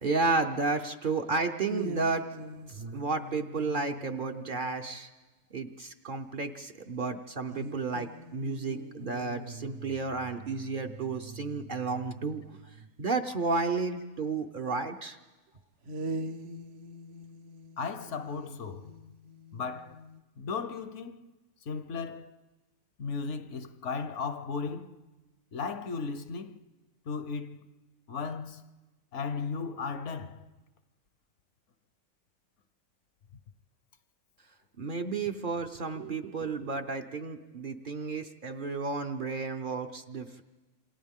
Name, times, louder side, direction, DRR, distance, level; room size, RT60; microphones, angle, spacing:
voice 1, 0.0-2.3 2.7-5.1 5.5-12.4 13.0-15.2 34.8-40.4, right 4 dB, 45° right, 0.8 m, -32 dB
sound 1, 1.7-5.0 7.5-12.9 15.8-20.2, right 2 dB, 65° right, 1.2 m, -43 dB
voice 2, 17.8-18.9 19.5-20.0 20.4-21.3 21.7-22.3 23.0-25.0 25.5-26.6 27.1-27.7 28.1-28.6 29.1-30.5, left 5 dB, 65° left, 1.1 m, -36 dB
27.5 x 26.5 x 3.7 m
omnidirectional pair, 1.4 m